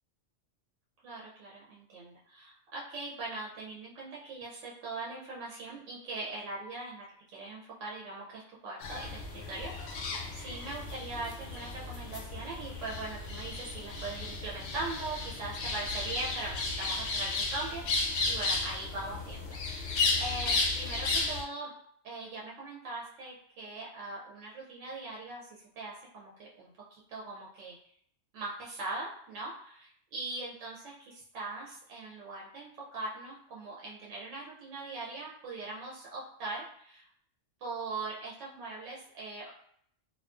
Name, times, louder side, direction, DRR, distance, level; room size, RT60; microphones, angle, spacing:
voice 1, 1.0-21.7 22.0-27.7 28.3-37.0 37.6-39.5, right 2 dB, 80° right, -4 dB, 0.9 m, -41 dB
sound 1, 8.8-21.4, left 3 dB, 70° left, 0.8 m, -34 dB
2.4 x 2.3 x 2.4 m, 0.66 s
omnidirectional pair, 1.3 m